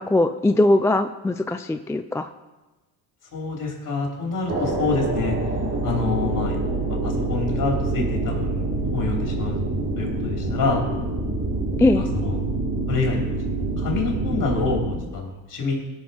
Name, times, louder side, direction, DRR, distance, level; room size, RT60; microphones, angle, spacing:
voice 1, 0.0-2.3 11.8-12.1, left 2 dB, 5° left, 8 dB, 0.3 m, -20 dB
voice 2, 3.3-5.4 5.8-6.6 6.9-9.6 10.0-10.9 11.9-12.4 12.9-13.2 13.8-15.8, left 4 dB, 50° left, -1 dB, 3.9 m, -27 dB
sound 1, 4.5-14.9, right 2 dB, 30° right, 3.6 m, -26 dB
17.5 x 6.6 x 4.4 m, 1.1 s
supercardioid pair, 90°, 41 cm